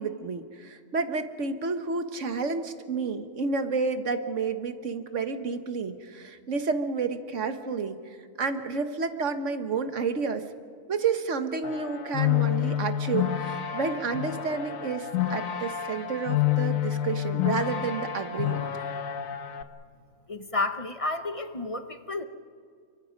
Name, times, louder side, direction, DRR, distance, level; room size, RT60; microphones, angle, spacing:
voice 1, 0.0-10.4 10.9-18.7, right 4 dB, 65° right, 8 dB, 1.6 m, -30 dB
sound 1, 11.6-19.6, left 12 dB, 85° left, 1.4 m, -29 dB
voice 2, 20.3-22.2, left 2 dB, 30° left, 9 dB, 0.9 m, -31 dB
29.5 x 24.5 x 5.3 m, 2.1 s
omnidirectional pair, 1.4 m